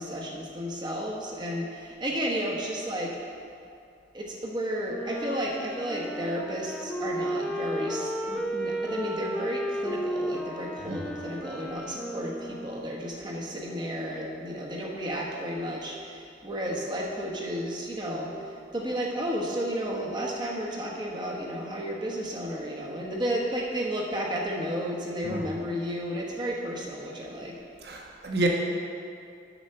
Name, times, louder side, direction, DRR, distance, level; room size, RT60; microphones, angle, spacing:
voice 1, 0.0-3.2 4.1-27.6, equal, 25° right, -2 dB, 1.0 m, -32 dB
Wind instrument woodwind instrument, 4.8-13.2, equal, 5° left, 0.5 m, -34 dB
voice 2, 27.8-28.5, right 2 dB, 60° right, 0 dB, 1.2 m, -29 dB
7.1 x 5.7 x 6.6 m, 2.4 s
head